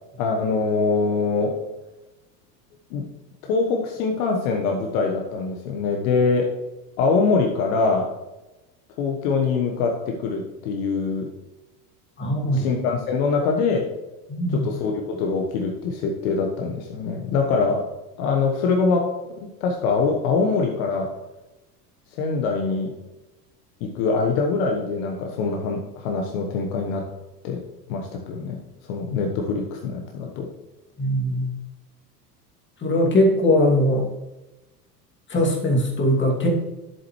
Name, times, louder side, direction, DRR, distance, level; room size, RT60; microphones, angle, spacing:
voice 1, 0.2-1.5 2.9-3.1 3.4-6.5 7.0-8.1 9.0-11.3 12.5-13.9 14.5-17.8 18.2-19.1 19.4-21.1 22.1-23.0 23.8-27.1 27.4-27.6 27.9-28.6 28.9-30.5, left 4 dB, 55° left, 2 dB, 1.3 m, -23 dB
voice 2, 12.2-12.7 14.3-14.7 31.0-31.5 32.8-34.1 35.3-36.5, left 1 dB, 25° left, 0 dB, 2.5 m, -20 dB
11.0 x 7.8 x 3.1 m, 1.0 s
figure-of-eight pair, 80°, 49 cm